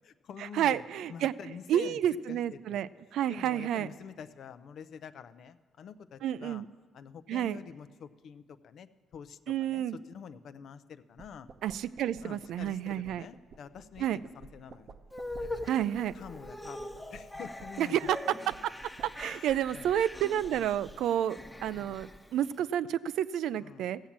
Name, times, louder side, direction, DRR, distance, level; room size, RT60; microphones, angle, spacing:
voice 1, 0.0-2.0 2.3-2.8 3.3-6.6 6.9-11.5 12.2-14.9 15.4-15.8 16.1-18.1 19.3-19.9 20.5-20.7 21.7-21.9 23.6-23.9, left 7 dB, 65° left, 14 dB, 0.5 m, -47 dB
voice 2, 0.5-1.3 1.7-3.9 6.2-6.6 7.3-7.6 9.5-10.0 11.6-13.2 14.0-14.2 15.7-16.1 17.8-18.2 18.5-18.7 19.0-24.0, right 10 dB, 80° right, 16 dB, 0.3 m, -30 dB
sound 1, 11.2-21.2, right 5 dB, 55° right, 0.7 m, -55 dB
sound 2, 15.1-22.5, left 1 dB, 10° left, 1.0 m, -43 dB
15.0 x 7.3 x 7.3 m, 1.5 s
cardioid pair, 90°, 0 cm